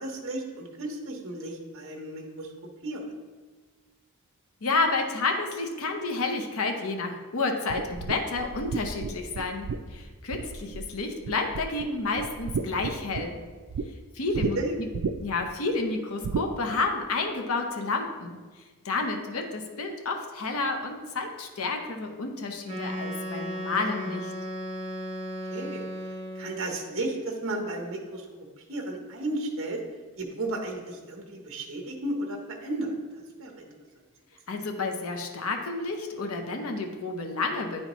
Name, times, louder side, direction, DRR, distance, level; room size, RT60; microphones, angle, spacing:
voice 1, 0.0-2.5 2.8-3.0 14.6-14.7 25.5-25.8 26.3-28.3 28.6-29.8 30.2-33.7, right 2 dB, 60° right, 1 dB, 0.9 m, -34 dB
voice 2, 4.6-9.7 9.9-13.4 14.1-14.9 15.2-18.4 18.8-24.3 34.5-37.8, left 3 dB, 75° left, 4 dB, 0.7 m, -30 dB
sound 1, 7.7-10.9 11.2-11.9 12.2-13.9 14.3-14.5 14.9-15.4 16.2-16.5, right 5 dB, 85° right, 0.4 m, -32 dB
Wind instrument woodwind instrument, 22.6-26.7, equal, 25° right, 0.8 m, -35 dB
10.0 x 4.3 x 3.0 m, 1.4 s
head